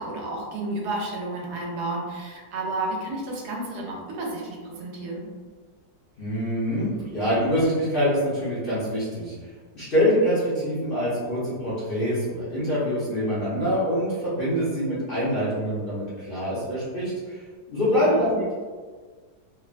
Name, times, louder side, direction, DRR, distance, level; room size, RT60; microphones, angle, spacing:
voice 1, 0.0-5.3 17.8-18.4, right 2 dB, 80° right, -2 dB, 1.2 m, -32 dB
voice 2, 6.2-9.3 9.7-17.4 17.7-18.6, equal, 50° left, -10 dB, 0.7 m, -25 dB
3.3 x 2.1 x 2.4 m, 1.5 s
omnidirectional pair, 1.8 m